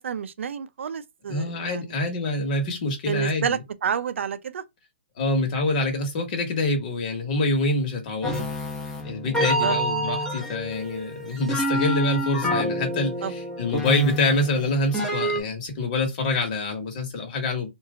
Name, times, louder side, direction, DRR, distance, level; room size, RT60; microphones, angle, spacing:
voice 1, 0.0-2.1 3.1-4.6 8.2-8.5 9.4-9.8 13.2-13.3, right 7 dB, 85° right, 0.5 m, -30 dB
voice 2, 1.3-3.6 5.2-8.5 9.0-17.7, left 2 dB, 40° left, 1.4 m, -26 dB
sound 1, 8.2-15.4, equal, 5° left, 0.9 m, -28 dB
2.9 x 2.6 x 3.7 m
hypercardioid pair, 160°, 7 cm